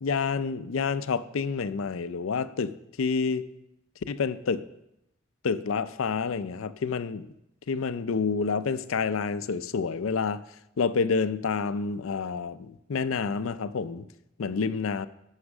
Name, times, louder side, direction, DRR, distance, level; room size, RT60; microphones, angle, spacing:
voice 1, 0.0-3.5 4.1-4.7 5.4-7.3 7.7-10.4 10.8-14.1 14.4-15.1, left 5 dB, 85° left, 14 dB, 0.5 m, -28 dB
9.8 x 6.4 x 6.0 m, 0.84 s
head